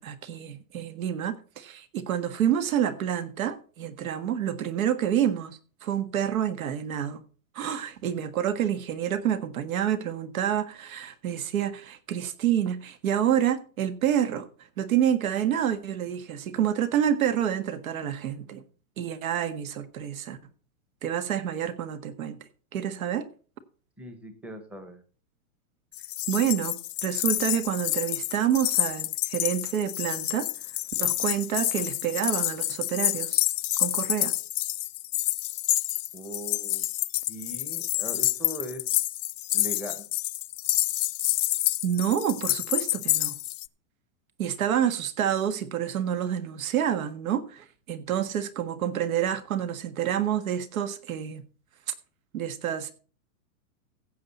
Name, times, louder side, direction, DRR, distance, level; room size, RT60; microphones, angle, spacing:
voice 1, 0.0-7.2 7.5-14.5 14.8-18.6 19.0-20.4 21.0-22.4 22.7-23.3 26.3-30.5 31.0-33.4 33.8-34.3 41.8-43.4 44.4-51.4 52.3-52.9, right 9 dB, 70° right, 1.7 m, -28 dB
voice 2, 24.0-25.0 36.1-36.8 37.3-38.8 39.5-40.1, right 1 dB, 5° right, 0.9 m, -39 dB
sound 1, 25.9-43.7, left 16 dB, 85° left, 0.6 m, -28 dB
15.5 x 7.6 x 4.2 m
supercardioid pair, 165°, 43 cm